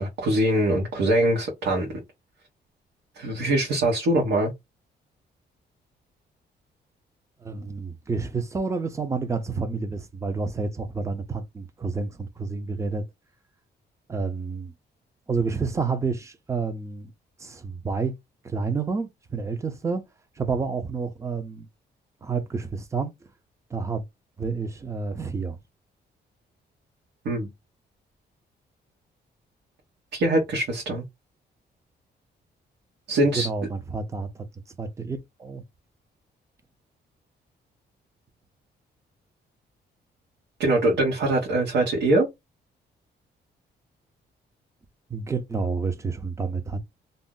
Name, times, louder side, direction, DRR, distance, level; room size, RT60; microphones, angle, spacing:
voice 1, 0.0-1.9 3.2-4.5 27.2-27.5 30.1-31.0 33.1-33.5 40.6-42.3, right 1 dB, 75° right, 1.0 m, -23 dB
voice 2, 7.4-13.0 14.1-14.7 15.3-17.1 17.4-18.2 18.4-20.0 20.4-21.7 22.2-23.1 23.7-24.0 24.4-25.6 33.3-34.5 34.8-35.6 45.1-46.8, right 4 dB, 15° right, 0.5 m, -29 dB
2.6 x 2.0 x 3.6 m
cardioid pair, 165°, 18 cm